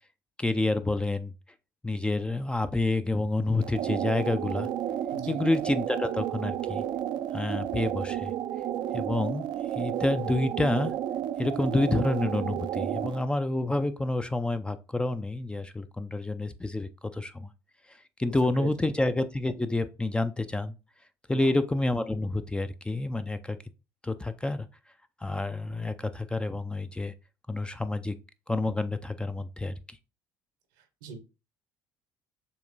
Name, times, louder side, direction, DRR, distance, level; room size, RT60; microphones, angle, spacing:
voice 1, 0.4-1.3 1.8-4.7 5.3-6.8 7.3-8.3 8.9-9.4 9.8-10.9 11.4-17.5 18.2-20.7 21.3-23.6 24.0-24.7 25.2-27.1 27.5-28.1 28.5-29.7, left 2 dB, 10° left, 0.4 m, -28 dB
sound 1, 3.6-13.2, right 11 dB, 55° right, 0.4 m, -32 dB
voice 2, 5.1-5.4 18.2-18.7 21.3-21.6 31.0-31.2, right 6 dB, 75° right, 0.9 m, -40 dB
6.9 x 2.8 x 2.6 m
hypercardioid pair, 65°, 9 cm